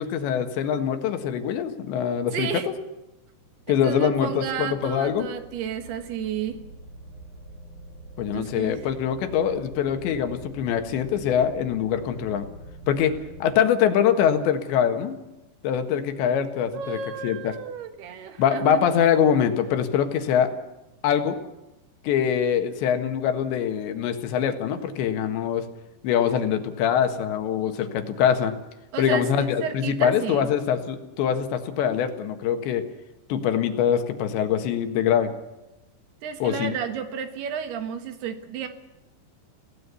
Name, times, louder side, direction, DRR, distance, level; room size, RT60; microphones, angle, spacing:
voice 1, 0.0-2.5 3.7-5.3 8.2-12.5 12.9-15.2 15.6-17.5 18.4-20.5 21.0-21.4 22.0-25.7 26.0-28.6 29.0-32.8 33.3-35.3 36.4-36.7, left 8 dB, 80° left, 7 dB, 3.8 m, -23 dB
voice 2, 2.3-2.7 3.7-6.6 8.3-8.8 16.7-18.8 28.9-30.5 36.2-38.7, right 7 dB, 70° right, 8 dB, 3.3 m, -32 dB
sound 1, 3.2-13.4, right 1 dB, 40° right, 8.1 m, -45 dB
27.5 x 17.5 x 7.0 m, 0.98 s
omnidirectional pair, 5.2 m